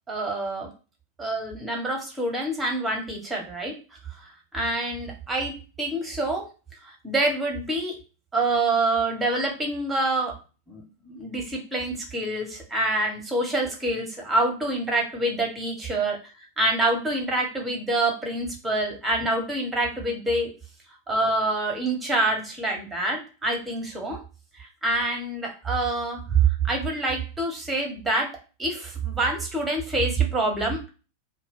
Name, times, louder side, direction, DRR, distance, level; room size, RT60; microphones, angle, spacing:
voice 1, 0.1-0.7 1.2-6.4 6.7-8.0 8.3-10.4 10.7-20.5 21.1-24.2 24.5-28.3 28.6-30.9, right 2 dB, 10° right, 1 dB, 1.0 m, -26 dB
2.1 x 2.1 x 3.6 m, 0.35 s
figure-of-eight pair, 90°, 0 cm